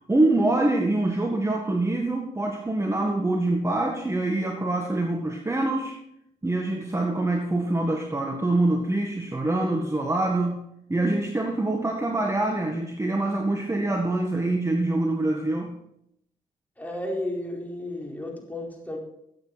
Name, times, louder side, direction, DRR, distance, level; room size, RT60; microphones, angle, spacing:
voice 1, 0.1-6.0 6.4-10.6 10.9-15.8, right 2 dB, 15° right, 2 dB, 1.7 m, -25 dB
voice 2, 16.8-19.0, left 1 dB, 10° left, -1 dB, 4.2 m, -33 dB
13.5 x 8.4 x 4.1 m, 0.76 s
supercardioid pair, 60°, 17 cm